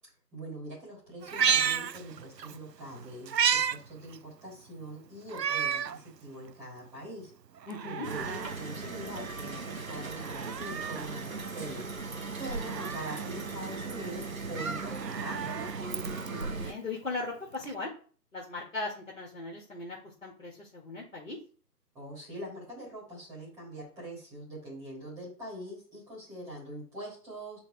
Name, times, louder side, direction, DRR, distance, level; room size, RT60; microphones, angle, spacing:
voice 1, 0.3-7.3 7.8-11.9 12.4-15.6 21.9-27.6, right 1 dB, 5° right, -7 dB, 3.2 m, -43 dB
Meow, 1.2-2.6 2.9-3.8 4.1-4.2 5.3-6.0 6.5-6.6 7.6-8.6 10.1-11.1 12.5-13.3 14.8-16.4 17.6-17.7, right 8 dB, 85° right, 0.6 m, -31 dB
voice 2, 7.7-8.1 16.3-17.9 18.3-21.4, left 3 dB, 55° left, -3 dB, 2.4 m, -38 dB
sound 1, 8.0-16.7, right 4 dB, 55° right, 1.2 m, -38 dB
10.0 x 3.9 x 3.5 m, 0.42 s
figure-of-eight pair, 155°, 48 cm